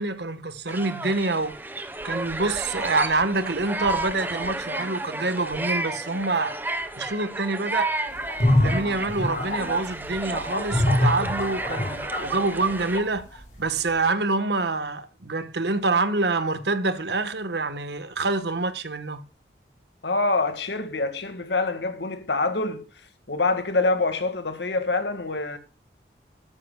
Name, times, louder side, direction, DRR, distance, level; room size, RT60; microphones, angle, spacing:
voice 1, 0.0-1.6 2.0-6.5 6.9-7.9 8.5-19.2, right 3 dB, 75° right, 1.2 m, -26 dB
sound 1, 0.7-13.0, right 2 dB, 10° right, 1.0 m, -32 dB
sound 2, 8.1-13.4, left 1 dB, 45° left, 5.4 m, -25 dB
voice 2, 20.0-22.9 23.3-25.6, left 3 dB, 80° left, 1.8 m, -25 dB
13.5 x 12.0 x 2.3 m
head